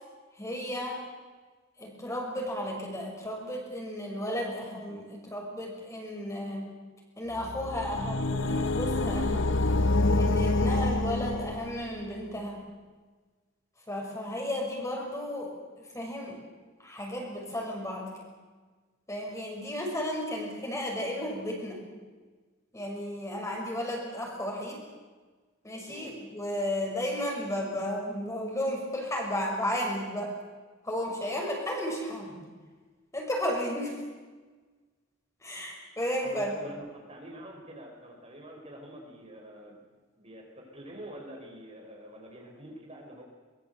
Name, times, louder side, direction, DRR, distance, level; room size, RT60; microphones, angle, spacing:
voice 1, 0.3-1.0 1.8-6.7 7.2-9.7 10.1-12.6 13.9-15.5 15.8-16.4 16.8-18.3 19.1-21.8 22.7-24.8 25.6-30.3 30.8-32.4 33.1-33.9 35.4-36.6, equal, 15° left, 0 dB, 6.2 m, -33 dB
sound 1, 7.3-12.0, left 2 dB, 70° left, 1.0 m, -27 dB
voice 2, 36.2-39.8 40.2-43.2, right 1 dB, 30° right, 0 dB, 5.0 m, -45 dB
23.5 x 21.5 x 8.2 m, 1.4 s
head